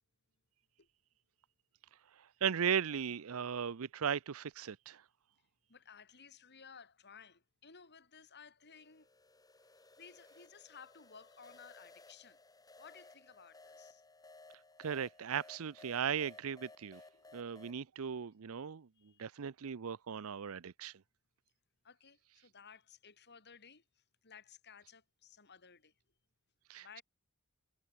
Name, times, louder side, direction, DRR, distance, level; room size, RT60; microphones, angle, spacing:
voice 1, 2.4-5.0 14.8-17.0 17.3-18.9 19.2-20.9 26.7-27.0, right 7 dB, 65° right, 0.5 m, -37 dB
voice 2, 5.7-9.1 9.8-12.4 12.8-14.0 17.1-17.2 19.0-19.3 21.8-25.9 26.8-27.0, left 6 dB, 50° left, 3.7 m, -57 dB
sound 1, 8.7-17.8, left 2 dB, 15° left, 2.9 m, -59 dB
head